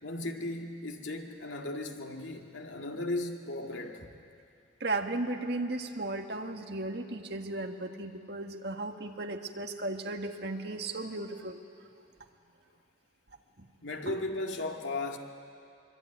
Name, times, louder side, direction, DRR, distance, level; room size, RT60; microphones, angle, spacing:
voice 1, 0.0-4.1 13.8-15.2, left 2 dB, 85° left, 2.2 m, -36 dB
voice 2, 4.8-11.6 14.1-14.2, right 2 dB, 55° right, 1.7 m, -35 dB
24.5 x 24.0 x 9.4 m
head